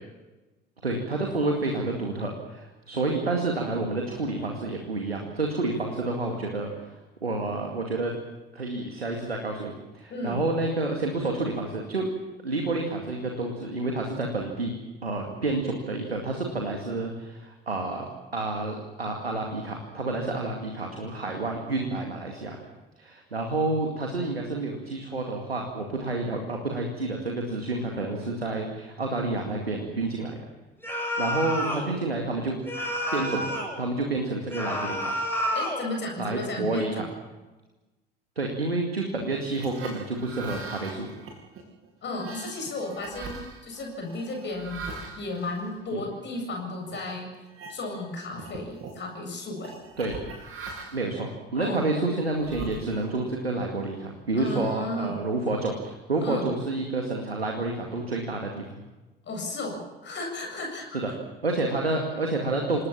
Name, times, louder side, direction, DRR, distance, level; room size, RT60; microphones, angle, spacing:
voice 1, 0.8-8.1 8.5-12.1 12.4-14.8 15.0-18.1 18.3-22.6 23.0-30.4 31.2-32.6 33.1-35.1 36.2-37.0 38.4-41.1 45.9-46.0 50.0-50.2 50.9-58.8 61.0-61.1 61.4-62.8, right 2 dB, 85° right, 2 dB, 2.2 m, -29 dB
voice 2, 10.1-10.4 35.5-37.0 42.0-44.8 45.2-47.3 47.7-49.7 51.5-51.9 54.3-55.2 56.2-56.5 59.2-61.2, left 2 dB, 40° left, 2 dB, 7.7 m, -34 dB
sound 1, 30.8-31.9 32.7-33.8 34.5-35.9, equal, 5° left, 7.7 m, -29 dB
sound 2, 39.3-46.4 46.9-47.1 47.5-48.1 48.3-49.0 49.6-51.1 51.7-53.3, right 3 dB, 45° right, 7.9 m, -42 dB
27.5 x 19.0 x 7.3 m, 1.1 s
figure-of-eight pair, 60°, 30 cm